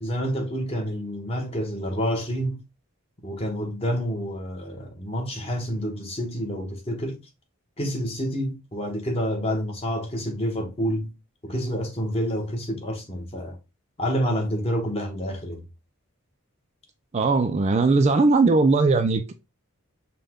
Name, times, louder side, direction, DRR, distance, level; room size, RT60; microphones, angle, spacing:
voice 1, 0.0-2.6 3.2-7.2 7.8-11.1 11.4-13.6 14.0-15.6, equal, 25° left, 1.0 m, -28 dB
voice 2, 17.1-19.3, right 3 dB, 30° right, 0.3 m, -19 dB
5.4 x 2.2 x 3.5 m
head